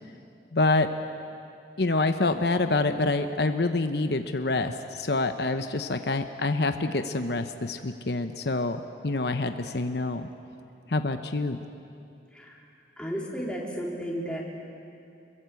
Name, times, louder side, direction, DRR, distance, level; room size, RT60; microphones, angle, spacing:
voice 1, 0.5-0.9 1.8-10.3 10.9-11.6, left 2 dB, 70° left, 8 dB, 0.9 m, -26 dB
voice 2, 12.3-12.6 13.0-14.4, equal, 5° left, -2 dB, 3.6 m, -33 dB
28.0 x 22.0 x 8.4 m, 2.6 s
head